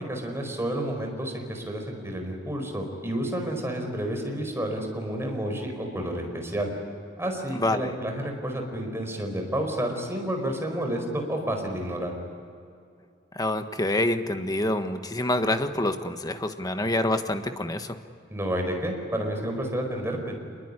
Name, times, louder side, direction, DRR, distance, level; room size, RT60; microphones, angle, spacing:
voice 1, 0.1-6.7 7.2-12.1 18.3-20.3, right 1 dB, 15° right, 3 dB, 4.8 m, -30 dB
voice 2, 7.5-7.9 13.3-18.0, left 1 dB, 20° left, 8 dB, 1.4 m, -27 dB
27.0 x 22.0 x 9.9 m, 2.5 s
head